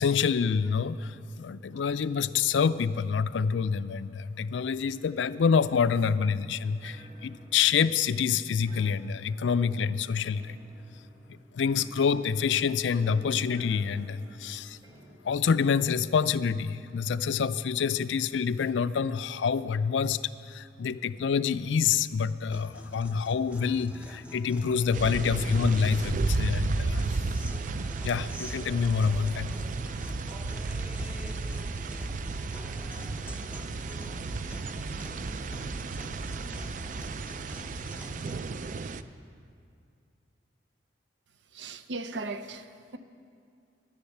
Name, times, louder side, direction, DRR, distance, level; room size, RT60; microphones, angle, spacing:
voice 1, 0.0-10.6 11.3-14.8 15.2-20.2 20.5-27.2 28.0-29.5, left 6 dB, 85° left, 0.4 m, -27 dB
sound 1, 6.8-15.2, right 1 dB, 25° right, 1.4 m, -51 dB
Guitar, 22.5-38.5, equal, 5° right, 0.7 m, -46 dB
sound 2, 24.9-39.0, right 3 dB, 45° right, 0.4 m, -33 dB
voice 2, 41.5-43.0, right 3 dB, 80° right, 0.7 m, -37 dB
12.0 x 10.0 x 7.9 m
head